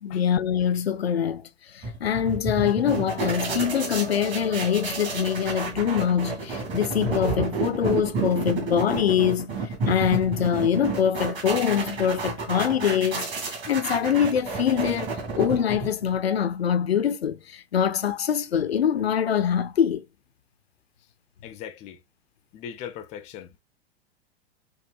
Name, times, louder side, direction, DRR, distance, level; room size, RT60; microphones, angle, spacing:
voice 1, 0.0-1.4 1.7-9.5 9.9-15.1 15.4-20.0, left 8 dB, 75° left, 0.5 m, -24 dB
sound 1, 1.8-16.2, right 4 dB, 35° right, 1.8 m, -31 dB
sound 2, 3.3-8.3, right 1 dB, 85° right, 1.5 m, -35 dB
voice 2, 21.4-22.0 22.5-23.6, left 9 dB, 20° left, 0.5 m, -39 dB
5.3 x 2.1 x 2.2 m
figure-of-eight pair, 95°, 31 cm